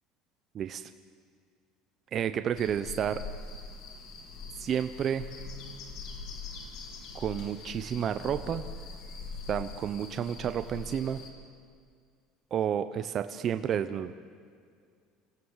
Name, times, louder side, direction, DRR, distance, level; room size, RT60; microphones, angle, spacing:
voice 1, 0.5-0.9 2.1-3.2 4.6-5.2 7.1-8.6 9.5-11.2 12.5-14.1, right 9 dB, 35° right, 10 dB, 0.8 m, -31 dB
sound 1, 2.6-11.3, left 4 dB, 55° left, 3.2 m, -42 dB
27.0 x 16.5 x 7.4 m, 2.1 s
cardioid pair, 140°, 0 cm